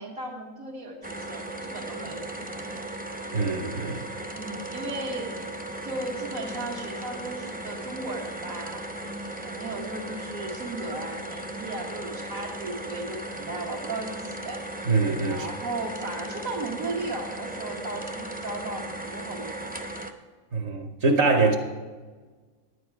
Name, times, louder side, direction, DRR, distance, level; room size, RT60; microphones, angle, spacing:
voice 1, 0.0-2.8 4.3-5.4 5.8-14.6 15.3-19.8, right 2 dB, 85° right, 2.0 m, -36 dB
sound 1, 1.0-20.1, right 1 dB, 15° right, 0.3 m, -37 dB
voice 2, 3.3-4.0 14.9-15.5 20.5-21.6, right 3 dB, 60° right, 1.2 m, -23 dB
10.5 x 9.6 x 4.6 m
omnidirectional pair, 1.4 m